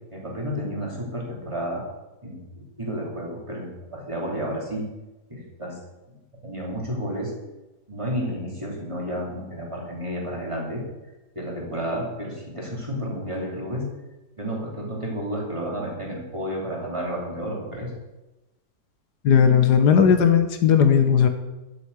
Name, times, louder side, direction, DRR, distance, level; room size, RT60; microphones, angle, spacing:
voice 1, 0.1-1.8 2.2-4.9 5.3-5.8 6.1-6.2 6.4-7.3 7.9-10.8 11.3-13.9 14.4-17.9, equal, 15° right, -3 dB, 2.9 m, -31 dB
voice 2, 19.2-21.3, left 7 dB, 75° left, 8 dB, 1.5 m, -17 dB
8.4 x 8.1 x 8.1 m, 1.0 s
omnidirectional pair, 1.8 m